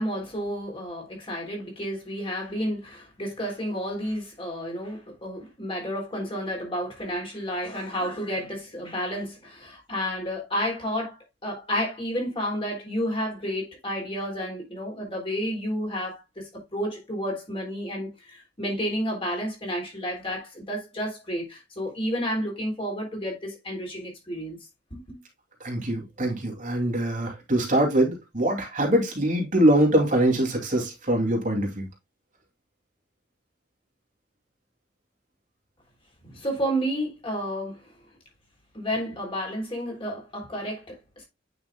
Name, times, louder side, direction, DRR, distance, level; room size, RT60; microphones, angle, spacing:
voice 1, 0.0-11.2 11.4-24.6 24.9-25.2 36.2-37.8 38.7-41.3, equal, 30° left, 3.3 m, -31 dB
voice 2, 25.6-31.9, right 1 dB, 40° right, 2.5 m, -23 dB
9.3 x 5.8 x 2.2 m
head